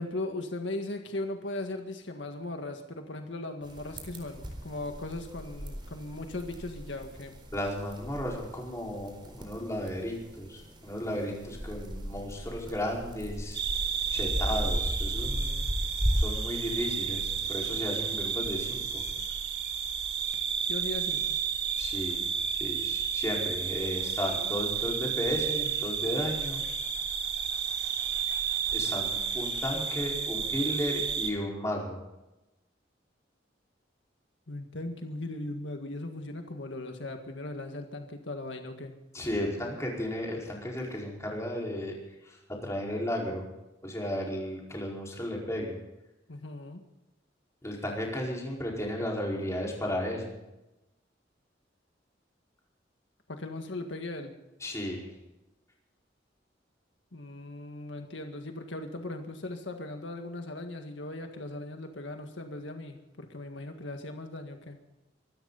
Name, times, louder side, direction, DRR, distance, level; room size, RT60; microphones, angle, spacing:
voice 1, 0.0-7.4 20.6-21.4 34.5-39.0 46.3-46.8 53.3-54.3 57.1-64.8, left 2 dB, 80° left, 5 dB, 1.8 m, -38 dB
sound 1, 3.6-19.2, equal, 25° right, 4.1 m, -37 dB
voice 2, 7.5-13.6 14.1-15.7 16.1-19.0 21.8-26.6 28.7-32.0 39.1-41.9 42.2-43.4 43.8-45.8 47.6-50.3 54.6-55.1, left 1 dB, 15° left, -2 dB, 4.8 m, -34 dB
sound 2, 13.5-31.3, right 7 dB, 60° right, 2.7 m, -32 dB
24.5 x 13.5 x 4.1 m, 0.98 s
head